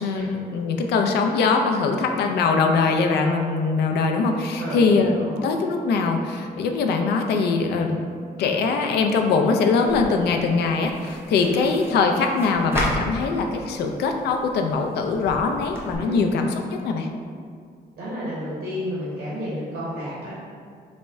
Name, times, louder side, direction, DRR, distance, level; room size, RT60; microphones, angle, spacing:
voice 1, 0.0-8.0 8.4-17.1, left 4 dB, 90° left, 4 dB, 0.4 m, -22 dB
sound 1, 9.9-16.0, equal, 15° right, 0.5 m, -34 dB
voice 2, 18.0-20.3, equal, 70° right, -8 dB, 0.9 m, -31 dB
4.1 x 2.1 x 3.4 m, 2.1 s
cardioid pair, 135°, 17 cm